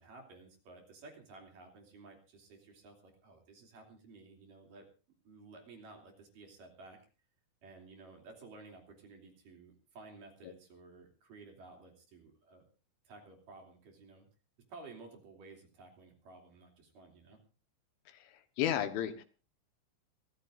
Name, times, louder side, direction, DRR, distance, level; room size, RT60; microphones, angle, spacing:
voice 1, 0.0-4.9 5.2-7.0 7.6-12.7 13.0-14.3 14.7-17.4, right 3 dB, 50° right, 2 dB, 4.1 m, -54 dB
voice 2, 18.1-19.2, left 10 dB, 80° left, 8 dB, 3.7 m, -34 dB
29.0 x 14.5 x 2.6 m, 0.35 s
omnidirectional pair, 5.6 m